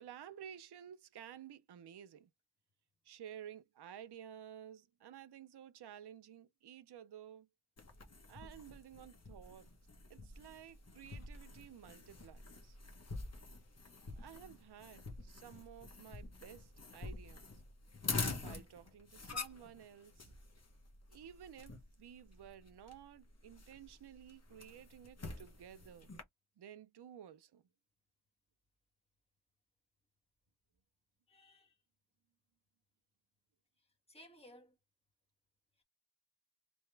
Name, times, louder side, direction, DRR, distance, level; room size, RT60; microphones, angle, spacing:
voice 1, 0.0-2.3 3.0-7.5 8.3-9.7 10.1-12.8 14.2-17.5 18.4-20.3 21.1-26.1 26.6-27.6, right 9 dB, 55° right, 0.6 m, -54 dB
sound 1, 7.8-26.2, left 3 dB, 30° left, 1.0 m, -47 dB
voice 2, 31.3-31.8 33.8-34.8 35.8-35.9, equal, 10° left, 1.5 m, -60 dB
3.5 x 2.8 x 3.3 m
wide cardioid pair, 125°, 49 cm